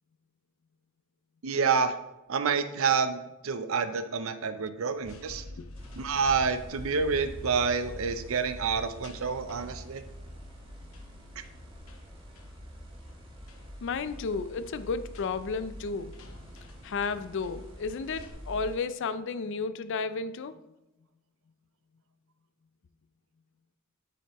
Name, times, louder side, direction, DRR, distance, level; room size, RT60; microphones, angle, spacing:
voice 1, 1.4-2.0 2.3-5.4 6.0-10.0 11.4-11.5, right 5 dB, 70° right, 10 dB, 0.5 m, -28 dB
sound 1, 5.0-18.3, left 2 dB, 80° left, 0.9 m, -50 dB
sound 2, 5.7-18.8, equal, 25° right, 1.5 m, -46 dB
voice 2, 13.8-16.1 16.8-20.5, left 4 dB, 60° left, 13 dB, 0.4 m, -32 dB
7.9 x 7.2 x 3.0 m, 0.95 s
head